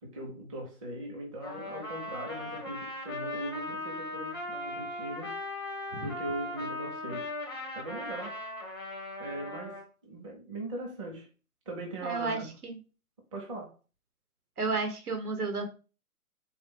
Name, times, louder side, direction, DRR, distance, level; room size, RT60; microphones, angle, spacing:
voice 1, 0.0-5.4 6.0-7.3 7.7-8.4 9.2-11.3 11.7-12.5 13.3-13.7, right 1 dB, 20° right, 0.8 m, -40 dB
Trumpet, 1.4-9.8, left 1 dB, 20° left, 0.4 m, -38 dB
voice 2, 12.0-12.8 14.6-15.7, right 4 dB, 85° right, 1.4 m, -32 dB
3.6 x 2.5 x 3.7 m
hypercardioid pair, 160°, 44 cm